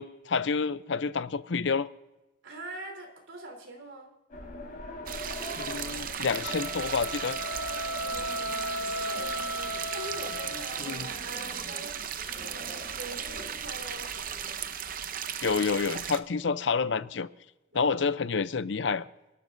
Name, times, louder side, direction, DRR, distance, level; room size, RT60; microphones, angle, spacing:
voice 1, 0.0-1.9 5.6-7.4 10.8-11.1 15.4-17.3 17.7-19.1, left 5 dB, 65° left, 0.6 m, -29 dB
voice 2, 2.4-4.1 8.0-9.4 9.8-12.1 12.3-14.1 17.7-18.2, right 1 dB, 75° right, 3.5 m, -43 dB
sound 1, 4.3-15.0, left 1 dB, 45° left, 4.5 m, -44 dB
sound 2, 5.1-16.2, right 8 dB, 45° right, 0.7 m, -36 dB
sound 3, 6.4-10.9, equal, 90° left, 0.9 m, -35 dB
28.0 x 12.0 x 2.6 m
head